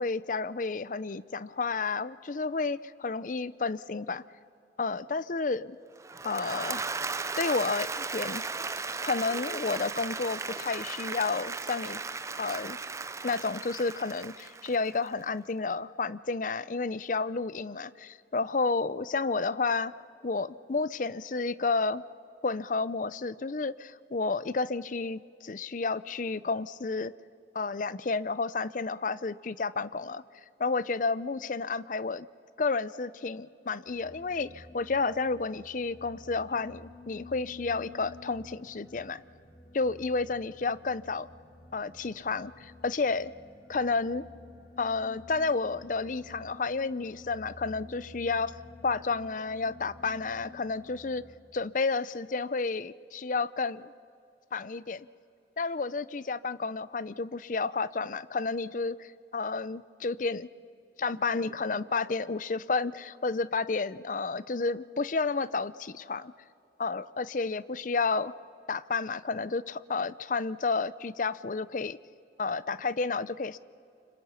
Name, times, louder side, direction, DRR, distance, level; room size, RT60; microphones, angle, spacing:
voice 1, 0.0-4.2 4.8-5.8 6.2-6.9 7.4-8.4 9.0-12.0 12.4-12.8 13.2-19.9 20.2-22.0 22.4-27.1 27.5-30.2 30.6-32.3 32.6-39.2 39.7-41.3 41.7-43.3 43.7-44.2 44.8-51.2 51.5-53.9 54.5-55.1 55.6-60.5 61.0-66.3 66.8-68.3 68.7-72.0 72.4-73.6, left 4 dB, 45° left, 17 dB, 0.5 m, -31 dB
Applause / Crowd, 6.0-15.1, right 4 dB, 15° right, 0.5 m, -36 dB
sound 1, 33.9-51.4, left 2 dB, 60° left, 4.5 m, -51 dB
29.5 x 25.5 x 5.7 m, 2.6 s
head